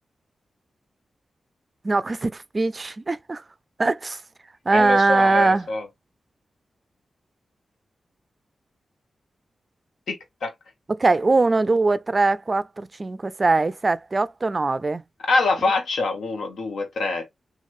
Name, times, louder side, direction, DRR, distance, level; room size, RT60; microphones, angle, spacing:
voice 1, 1.8-3.4 3.8-4.2 4.7-5.7 10.9-15.0, right 3 dB, 40° right, 0.3 m, -21 dB
voice 2, 4.7-5.8 10.1-10.5 15.3-17.3, left 3 dB, 80° left, 1.0 m, -25 dB
3.0 x 2.5 x 2.5 m
cardioid pair, 45°, 0 cm